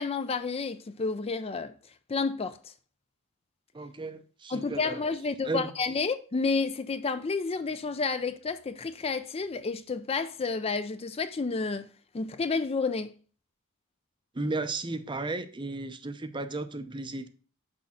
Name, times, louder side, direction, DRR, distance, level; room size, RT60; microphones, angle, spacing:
voice 1, 0.0-1.7 2.1-2.7 4.5-11.9 12.1-13.1, left 4 dB, 25° left, 0.4 m, -30 dB
voice 2, 3.7-5.0 5.4-5.7 14.3-17.3, right 2 dB, 20° right, 0.6 m, -34 dB
6.2 x 5.1 x 5.7 m
head